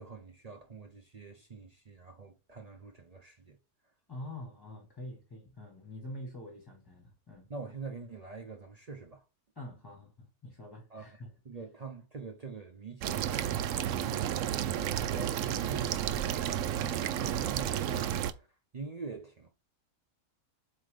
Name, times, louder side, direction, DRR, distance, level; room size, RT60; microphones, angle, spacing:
voice 1, 0.0-3.6 7.5-9.2 10.9-11.1 11.4-13.5 14.0-18.5 18.7-19.5, right 4 dB, 50° right, 0.4 m, -45 dB
voice 2, 4.1-7.5 9.5-11.3, left 1 dB, 15° left, 1.4 m, -45 dB
sound 1, 13.0-18.3, right 10 dB, 70° right, 0.8 m, -32 dB
7.8 x 2.9 x 5.0 m
omnidirectional pair, 1.7 m